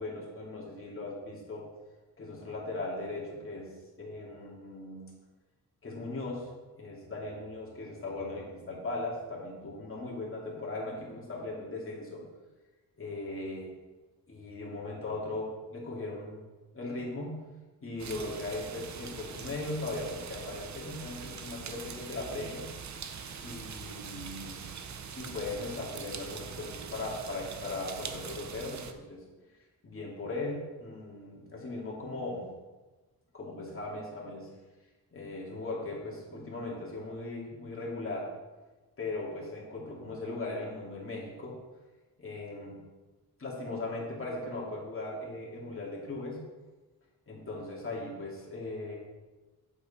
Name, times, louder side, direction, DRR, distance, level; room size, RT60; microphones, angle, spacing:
voice 1, 0.0-1.7 2.2-5.1 5.8-6.5 6.8-12.2 13.0-13.7 14.3-16.4 16.7-17.5 17.8-22.7 23.4-24.7 25.2-29.2 29.8-32.5 33.3-34.5 35.1-38.3 39.0-41.6 42.2-42.8 43.4-46.4 47.3-49.0, left 2 dB, 35° left, -4 dB, 2.7 m, -38 dB
sound 1, 18.0-28.9, right 6 dB, 50° right, 0.7 m, -43 dB
8.4 x 7.3 x 4.3 m, 1.2 s
wide cardioid pair, 115°, 38 cm